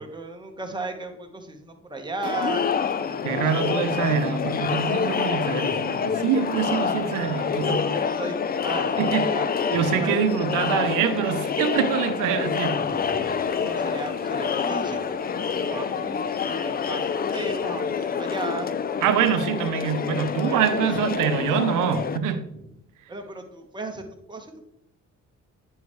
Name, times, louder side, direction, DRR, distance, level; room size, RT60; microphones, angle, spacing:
voice 1, 0.0-2.6 3.0-3.8 7.5-8.4 8.6-9.1 9.3-9.5 9.9-10.2 12.8-15.2 15.5-16.2 16.6-18.7 20.5-20.9 22.6-22.7 23.1-24.0 24.3-24.6, right 3 dB, 15° right, 3 dB, 1.2 m, -35 dB
Crowd, 2.2-22.2, left 6 dB, 30° left, 0.4 m, -27 dB
voice 2, 3.2-7.9 9.0-9.2 9.7-12.9 19.0-22.4, right 8 dB, 90° right, 9 dB, 0.7 m, -25 dB
sound 1, 11.8-17.9, left 3 dB, 60° left, 1.4 m, -48 dB
9.3 x 5.5 x 3.1 m, 0.80 s
cardioid pair, 90°, 30 cm